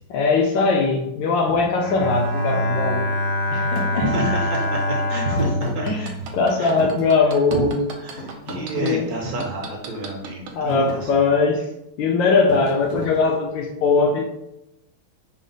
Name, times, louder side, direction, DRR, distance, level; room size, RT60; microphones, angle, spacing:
voice 1, 0.1-3.0 3.5-4.0 5.8-6.1 6.3-7.8 8.8-9.1 10.5-11.7 12.0-14.2, left 4 dB, 75° left, 2 dB, 1.2 m, -20 dB
Bowed string instrument, 1.8-7.1, left 1 dB, 90° left, 0.7 m, -25 dB
Thump thud, 3.8-3.9 5.3-6.4 6.8-7.8 8.2-9.6 10.2-10.4 10.7-11.1 12.5-13.6, left 1 dB, 55° left, 0.8 m, -34 dB
voice 2, 4.0-6.3 6.6-6.9 7.5-7.6 8.0-11.1, right 2 dB, 60° right, -1 dB, 1.0 m, -29 dB
sound 1, 5.7-8.9 9.4-10.6 11.0-11.1, right 6 dB, 80° right, 1.4 m, -36 dB
5.0 x 2.0 x 3.9 m, 0.89 s
omnidirectional pair, 2.3 m